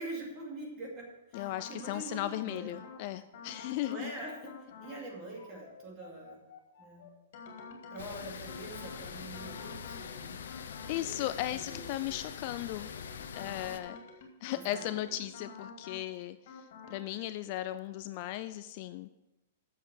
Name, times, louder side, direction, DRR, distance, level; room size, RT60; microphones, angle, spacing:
voice 1, 0.0-2.8 3.8-6.4 6.8-7.1 7.9-10.4 10.8-12.1 14.5-14.9, right 2 dB, 25° right, -2 dB, 2.5 m, -44 dB
sound 1, 1.3-2.1 2.5-3.0 3.3-4.1 4.5-5.0 5.4-12.4 12.8-16.1 16.5-17.0, left 4 dB, 50° left, 2.5 m, -49 dB
voice 2, 1.3-4.1 10.9-12.9 13.4-14.0 14.4-16.4 16.9-19.1, left 14 dB, 35° left, 12 dB, 0.3 m, -36 dB
sound 2, 8.0-13.8, left 7 dB, 85° left, 0.8 m, -44 dB
8.0 x 7.4 x 6.5 m, 0.97 s
hypercardioid pair, 170°, 0 cm